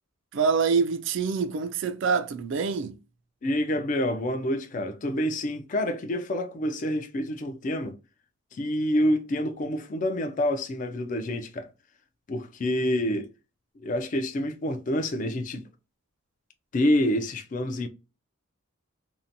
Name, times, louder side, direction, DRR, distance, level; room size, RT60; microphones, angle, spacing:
voice 1, 0.3-3.0, right 5 dB, 60° right, 0.3 m, -25 dB
voice 2, 3.4-8.0 8.5-11.7 12.3-13.3 13.8-15.6 16.7-17.9, left 1 dB, 35° left, 0.3 m, -27 dB
2.7 x 2.1 x 2.6 m
head